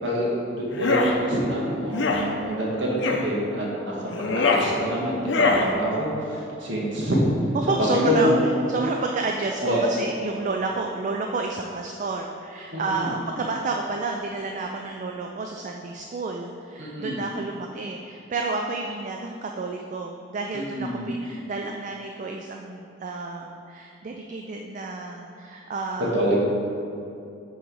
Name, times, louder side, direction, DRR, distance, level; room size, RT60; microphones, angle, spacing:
voice 1, 0.0-4.1 4.3-7.2 7.9-8.4 9.6-9.9 12.7-13.1 16.8-17.2 20.5-21.1 26.1-26.4, equal, 80° right, -4 dB, 1.5 m, -26 dB
sound 1, 0.7-1.1 1.9-2.2 3.0-3.3 4.1-4.7 5.2-5.7, left 3 dB, 75° left, 0.6 m, -22 dB
voice 2, 7.5-26.1, right 3 dB, 40° right, 2 dB, 0.3 m, -30 dB
6.3 x 4.7 x 4.7 m, 2.6 s
head